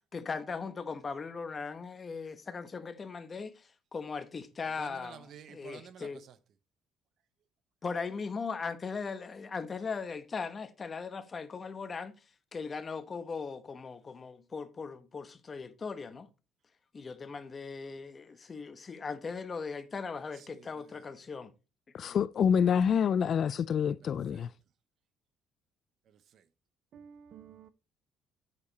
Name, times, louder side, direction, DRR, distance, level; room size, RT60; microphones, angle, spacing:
voice 1, 0.1-6.2 7.8-12.1 12.5-16.3 16.9-21.5 22.0-22.2, left 5 dB, 25° left, 1.0 m, -39 dB
voice 2, 4.8-6.1 20.5-20.9 24.3-24.4 26.9-27.7, right 8 dB, 50° right, 0.7 m, -50 dB
voice 3, 21.9-24.5, left 7 dB, 45° left, 0.3 m, -27 dB
8.6 x 6.5 x 4.0 m
cardioid pair, 135°, 0 cm